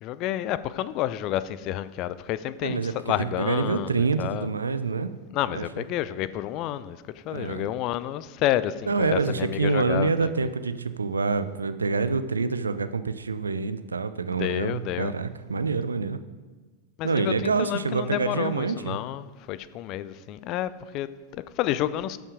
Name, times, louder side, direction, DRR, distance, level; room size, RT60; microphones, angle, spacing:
voice 1, 0.0-4.5 5.3-7.0 7.3-10.3 14.4-15.1 17.0-22.2, left 13 dB, 40° left, 0.4 m, -30 dB
voice 2, 2.6-5.1 5.5-5.8 7.3-7.7 8.9-16.2 17.0-19.0, right 4 dB, 75° right, 0.5 m, -27 dB
11.5 x 5.7 x 4.9 m
figure-of-eight pair, 90°, 0 cm